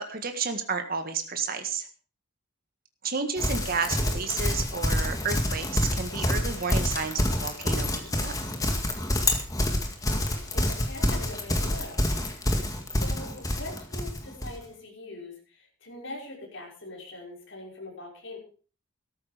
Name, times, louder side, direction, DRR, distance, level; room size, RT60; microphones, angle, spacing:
voice 1, 0.0-1.9 3.0-8.4, right 5 dB, 45° right, 6 dB, 1.7 m, -31 dB
Livestock farm animals working animals, 3.4-14.6, left 1 dB, 15° left, 2.1 m, -27 dB
voice 2, 4.0-4.3 7.9-8.4 9.7-12.1 12.7-18.4, left 2 dB, 60° left, -2 dB, 5.6 m, -43 dB
13.5 x 13.5 x 5.1 m, 0.39 s
head